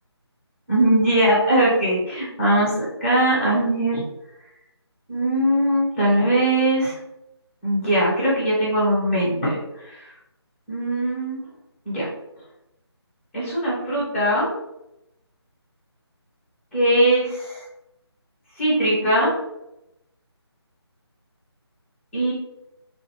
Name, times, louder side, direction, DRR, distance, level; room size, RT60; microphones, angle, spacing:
voice 1, 0.7-4.0 5.1-6.9 7.6-9.6 9.8-9.9 10.7-11.4 11.9-12.1 13.3-14.5 16.7-17.6 18.6-19.3 22.1-22.3, right 1 dB, 5° left, -7 dB, 0.5 m, -20 dB
3.1 x 2.3 x 2.8 m, 0.86 s
figure-of-eight pair, 155°, 14 cm